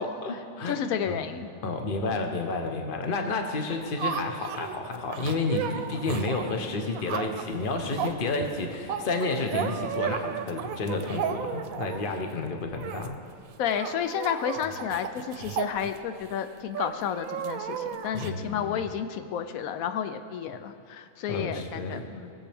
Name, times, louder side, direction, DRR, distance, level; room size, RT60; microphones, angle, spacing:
voice 1, 0.0-0.8 1.1-1.3 1.6-13.1 14.6-14.7 18.1-18.8 21.3-22.1, left 3 dB, 45° left, 4 dB, 1.0 m, -31 dB
voice 2, 0.7-1.5 13.6-22.3, left 8 dB, 85° left, 9 dB, 1.0 m, -31 dB
sound 1, 3.7-12.2 12.7-13.1 13.3-13.4 13.7-16.3 16.7-18.3, right 8 dB, 90° right, 1.1 m, -34 dB
19.0 x 7.5 x 3.5 m, 2.5 s
omnidirectional pair, 1.4 m